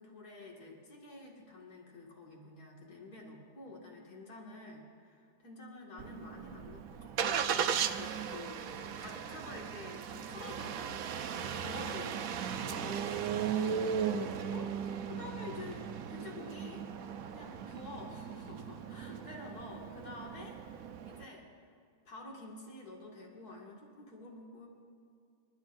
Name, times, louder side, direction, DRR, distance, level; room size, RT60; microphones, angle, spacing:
voice 1, 0.0-11.0 11.3-17.0 17.3-21.6 22.1-24.7, left 2 dB, 65° left, -2 dB, 2.7 m, -49 dB
Engine starting, 6.0-21.3, right 7 dB, 65° right, 1.0 m, -37 dB
26.5 x 13.0 x 2.6 m, 2.4 s
omnidirectional pair, 1.8 m